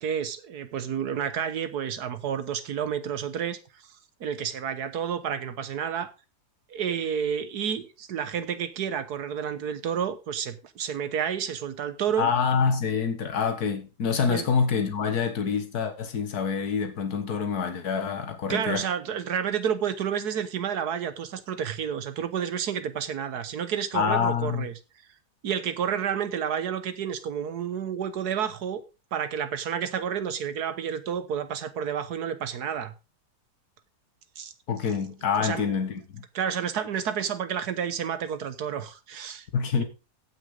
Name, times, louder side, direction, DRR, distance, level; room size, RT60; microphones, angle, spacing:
voice 1, 0.0-3.6 4.2-6.1 6.7-12.5 14.3-14.5 18.5-24.7 25.4-28.8 29.1-32.9 34.4-34.5 35.4-35.7 36.3-39.5, right 8 dB, 75° right, 1.6 m, -30 dB
voice 2, 12.2-18.8 23.9-24.7 34.7-36.2 39.5-39.8, left 6 dB, 70° left, 2.1 m, -26 dB
15.5 x 6.2 x 3.9 m
omnidirectional pair, 1.7 m